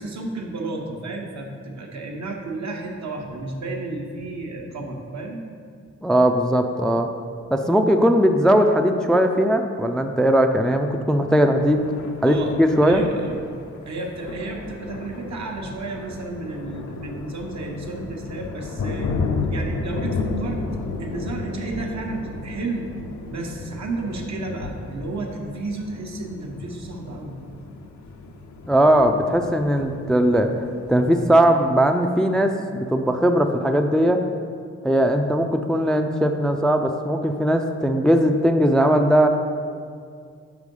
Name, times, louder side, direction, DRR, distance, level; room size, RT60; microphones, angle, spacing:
voice 1, 0.0-5.5 12.2-12.5 12.8-13.4 13.9-19.1 19.5-20.7 21.0-22.9 23.3-27.4, right 2 dB, 70° right, 0 dB, 1.0 m, -32 dB
voice 2, 6.0-7.1 7.5-11.8 12.2-13.0 28.7-30.5 30.9-34.2 34.8-39.3, equal, ahead, 5 dB, 0.3 m, -19 dB
Thunder, 11.6-31.3, left 3 dB, 75° left, 0.6 m, -33 dB
4.9 x 4.5 x 5.3 m, 2.2 s
cardioid pair, 60°, 29 cm